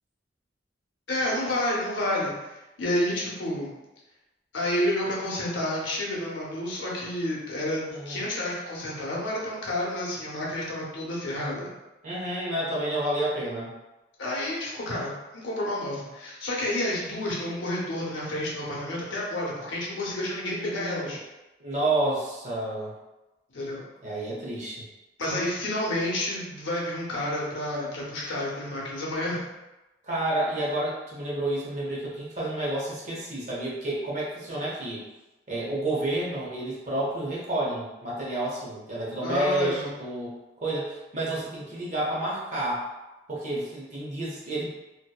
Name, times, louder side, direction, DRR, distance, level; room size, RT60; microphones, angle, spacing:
voice 1, 1.1-3.7 4.5-11.7 14.2-21.2 23.5-23.8 25.2-29.5 39.2-39.9, left 1 dB, 85° left, -5 dB, 0.7 m, -30 dB
voice 2, 7.9-8.2 12.0-13.7 20.4-21.2 21.6-22.9 24.0-24.9 30.0-35.0 35.5-42.9 43.3-44.7, right 1 dB, 40° right, -5 dB, 0.6 m, -30 dB
2.7 x 2.1 x 2.2 m, 1.0 s
head